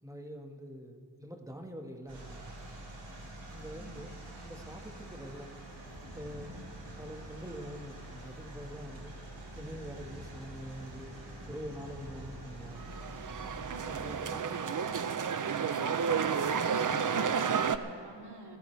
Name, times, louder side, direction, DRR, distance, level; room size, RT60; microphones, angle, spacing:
voice 1, 0.0-2.5 3.5-5.5 6.1-11.2 11.5-12.9 13.8-14.6, equal, 10° right, 2 dB, 1.7 m, -45 dB
sound 1, 2.1-14.2, right 1 dB, 90° right, 4.7 m, -46 dB
voice 2, 3.7-4.1 13.8-14.7 15.2-16.1 16.5-18.6, right 2 dB, 65° right, 0 dB, 2.6 m, -49 dB
sound 2, 12.8-17.8, right 6 dB, 45° right, 0.7 m, -31 dB
27.5 x 14.0 x 3.4 m, 2.6 s
wide cardioid pair, 75°, 43 cm